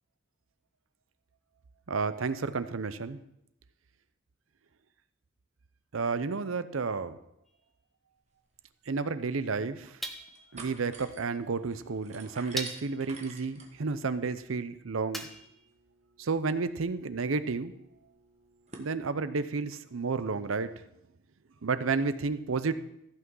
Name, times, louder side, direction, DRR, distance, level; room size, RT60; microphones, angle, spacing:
voice 1, 1.9-3.2 5.9-7.2 8.9-9.9 10.5-15.3 16.2-17.7 18.8-20.7 21.6-22.7, right 4 dB, 90° right, 13 dB, 0.6 m, -31 dB
sound 1, 7.5-7.6 10.0-10.6 11.6-11.7 12.6-13.1 15.1-15.7, equal, ahead, 0.7 m, -39 dB
sound 2, 8.5-8.6 8.9-9.0 9.5-10.0 10.3-18.9, right 3 dB, 35° right, 1.3 m, -52 dB
14.5 x 6.0 x 5.4 m, 0.82 s
head